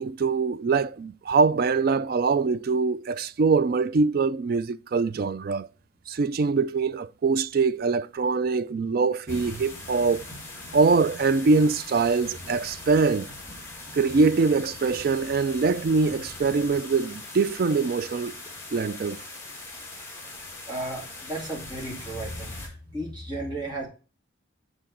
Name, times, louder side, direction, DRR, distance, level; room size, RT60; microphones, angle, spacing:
voice 1, 0.0-5.7 6.1-10.2 10.7-13.3 13.9-18.4 18.7-19.2, right 4 dB, 50° right, 0.3 m, -23 dB
sound 1, 9.3-22.7, left 2 dB, 15° left, 2.0 m, -41 dB
voice 2, 20.7-23.9, right 1 dB, 20° right, 2.2 m, -34 dB
7.8 x 3.9 x 6.1 m
head